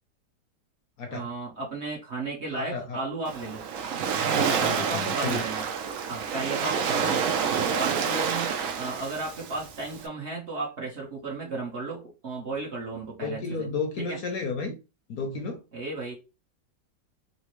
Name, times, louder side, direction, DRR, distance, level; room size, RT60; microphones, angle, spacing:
voice 1, 1.1-3.7 4.4-5.7 6.1-13.7 14.0-14.2 15.7-16.1, right 3 dB, 45° right, 1.0 m, -34 dB
voice 2, 2.5-3.0 4.3-5.4 13.2-14.8 15.1-15.6, left 4 dB, 60° left, 1.1 m, -32 dB
Waves surf, 3.3-10.1, right 6 dB, 70° right, 0.8 m, -28 dB
4.1 x 2.1 x 3.0 m
omnidirectional pair, 1.9 m